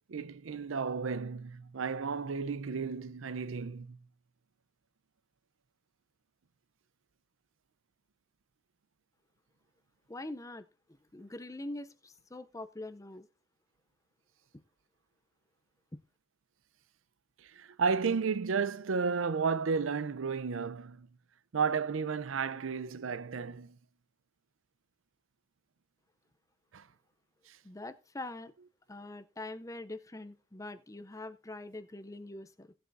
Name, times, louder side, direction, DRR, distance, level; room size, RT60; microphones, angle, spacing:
voice 1, 0.1-4.0 17.4-21.1 21.5-23.7 26.7-26.8 27.5-27.6, right 5 dB, 80° right, 0.5 m, -33 dB
voice 2, 10.1-10.7 11.1-13.3 15.9-16.0 27.6-28.5 28.9-32.7, left 2 dB, 15° left, 0.5 m, -43 dB
17.5 x 7.7 x 2.6 m
head